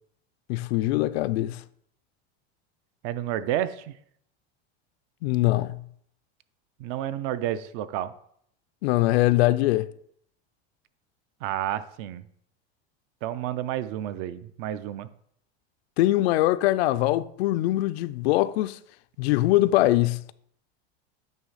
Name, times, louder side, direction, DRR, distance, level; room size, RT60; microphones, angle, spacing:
voice 1, 0.5-1.6 5.2-5.8 8.8-9.9 16.0-18.8 19.2-20.2, left 16 dB, 80° left, 0.5 m, -22 dB
voice 2, 3.0-3.9 6.8-8.1 11.4-12.2 13.2-15.1, right 12 dB, 45° right, 0.5 m, -30 dB
9.1 x 3.3 x 5.6 m
supercardioid pair, 150°, 31 cm